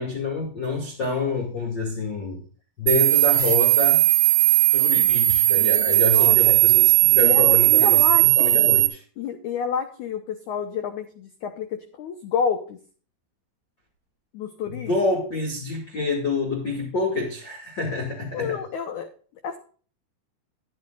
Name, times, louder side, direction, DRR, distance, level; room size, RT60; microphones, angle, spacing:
voice 1, 0.0-2.4 2.8-4.0 4.7-9.0 14.7-18.6, left 4 dB, 35° left, 2.1 m, -27 dB
sound 1, 2.9-8.9, right 18 dB, 80° right, 3.1 m, -17 dB
voice 2, 5.6-6.6 7.2-8.7 9.2-12.8 14.3-14.9 18.3-19.1 19.4-19.6, left 7 dB, 85° left, 1.7 m, -29 dB
12.5 x 11.5 x 2.4 m
omnidirectional pair, 4.9 m